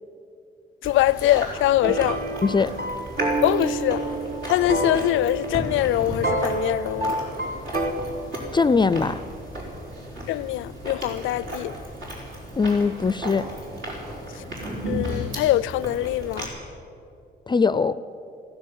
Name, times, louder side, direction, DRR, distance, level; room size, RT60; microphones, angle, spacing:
voice 1, 0.8-2.2 3.4-4.1 4.4-7.2 10.3-11.7 14.4-14.5 14.9-16.5, left 14 dB, 80° left, 0.4 m, -23 dB
Chewing mastication, 0.8-16.5, equal, 75° right, 4.8 m, -34 dB
sound 1, 1.8-7.9, right 2 dB, 45° right, 1.9 m, -28 dB
voice 2, 8.5-9.2 12.6-13.5 17.5-18.0, left 4 dB, 25° left, 0.4 m, -21 dB
15.5 x 10.5 x 8.9 m
cardioid pair, 90°, 20 cm